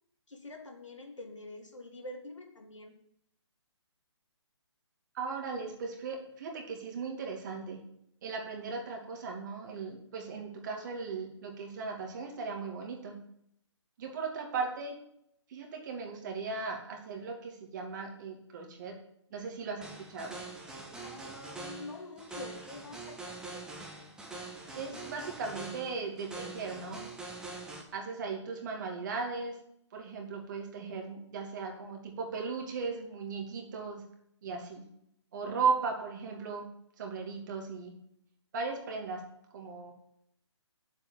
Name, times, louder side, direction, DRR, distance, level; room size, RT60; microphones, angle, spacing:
voice 1, 0.3-2.9 21.0-23.7, left 2 dB, 85° left, 2 dB, 3.1 m, -46 dB
voice 2, 5.1-7.8 8.2-13.2 14.0-15.0 15.5-19.0 19.3-20.4 24.7-27.1 27.9-29.6 29.9-34.0 34.4-34.9 35.3-36.7 37.0-37.9 38.5-39.2 39.5-39.9, right 4 dB, 40° right, 1 dB, 2.5 m, -37 dB
sound 1, 19.8-27.8, right 3 dB, 5° right, 1.6 m, -44 dB
9.0 x 7.5 x 7.4 m, 0.73 s
figure-of-eight pair, 145°, 15 cm